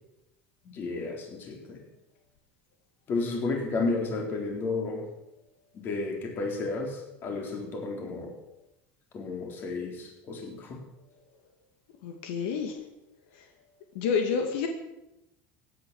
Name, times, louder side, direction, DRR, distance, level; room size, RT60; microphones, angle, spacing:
voice 1, 0.6-1.8 3.1-5.1 5.7-8.3 9.1-10.8, left 3 dB, 40° left, 2 dB, 4.1 m, -32 dB
voice 2, 12.0-12.8 14.0-14.7, left 6 dB, 85° left, 4 dB, 2.1 m, -28 dB
16.0 x 10.0 x 7.1 m, 0.91 s
cardioid pair, 140°, 6 cm